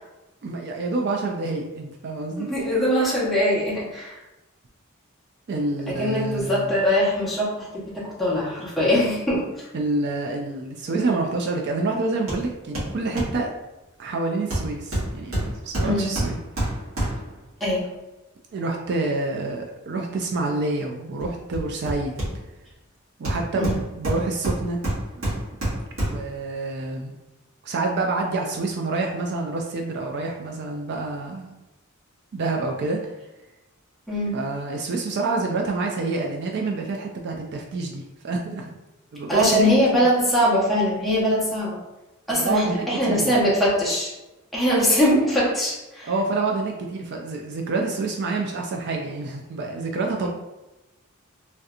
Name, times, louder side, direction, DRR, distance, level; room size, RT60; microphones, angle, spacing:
voice 1, 0.4-2.5 5.5-6.8 9.7-13.5 14.0-16.4 18.5-22.1 23.2-24.8 25.2-25.3 26.1-27.1 27.6-31.5 32.3-33.0 34.3-38.8 39.1-39.7 42.3-43.4 46.1-50.3, right 3 dB, 55° right, 1 dB, 0.4 m, -27 dB
voice 2, 2.4-4.2 5.9-9.4 15.8-16.1 17.6-17.9 23.6-23.8 34.1-34.4 39.3-41.8 42.3-44.1 44.5-46.1, equal, ahead, -8 dB, 0.9 m, -22 dB
Hammer, 12.3-12.5 12.7-13.4 14.5-17.4 21.2-22.7 23.2-26.3 26.8-26.9, right 1 dB, 75° right, 1.4 m, -28 dB
3.2 x 2.8 x 2.4 m, 1.0 s
head